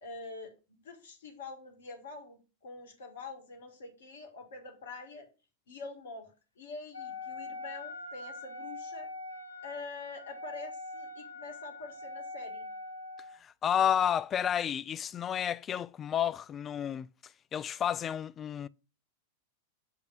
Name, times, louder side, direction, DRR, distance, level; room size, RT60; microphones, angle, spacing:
voice 1, 0.0-5.3 5.7-9.1 9.6-12.7, left 3 dB, 65° left, 1.8 m, -45 dB
Wind instrument woodwind instrument, 6.9-13.4, left 2 dB, 80° left, 0.8 m, -43 dB
voice 2, 13.4-17.1 17.5-18.7, left 9 dB, 25° left, 0.3 m, -31 dB
7.5 x 3.5 x 6.1 m
figure-of-eight pair, 90°, 0 cm